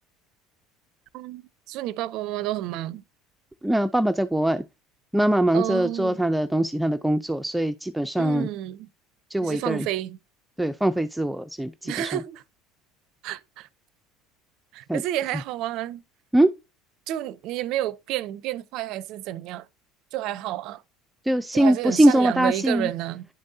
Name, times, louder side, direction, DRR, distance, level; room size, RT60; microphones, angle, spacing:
voice 1, 1.1-3.0 5.5-6.2 8.2-8.9 9.4-10.2 11.8-12.4 13.2-13.7 14.7-16.0 17.1-19.6 20.1-20.8 21.5-23.3, right 13 dB, 60° right, 0.5 m, -30 dB
voice 2, 3.6-4.6 5.1-8.5 9.3-9.9 10.6-12.1 14.9-15.0 16.3-16.5 21.3-22.9, right 1 dB, 5° right, 0.4 m, -22 dB
10.0 x 5.2 x 2.6 m
hypercardioid pair, 70°, 0 cm